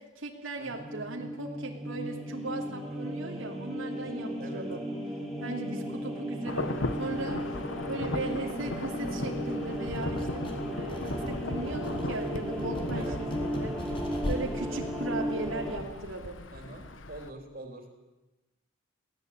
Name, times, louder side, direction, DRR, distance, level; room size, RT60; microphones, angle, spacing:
voice 1, 0.0-4.9 5.4-7.4 7.9-14.0 14.2-16.4, right 2 dB, 85° right, 0 dB, 3.1 m, -38 dB
voice 2, 0.6-0.9 2.9-3.2 4.4-4.7 5.7-6.1 10.8-11.0 12.9-13.2 14.5-14.8 16.5-17.9, right 1 dB, 45° right, 4 dB, 3.8 m, -46 dB
sound 1, 0.7-15.8, equal, ahead, 4.3 m, -35 dB
Insect / Thunder / Rain, 6.5-17.3, left 2 dB, 75° left, 1.5 m, -37 dB
sound 2, 9.9-10.6 10.9-14.4, equal, 25° left, 4.0 m, -42 dB
24.0 x 17.5 x 8.8 m, 1.1 s
head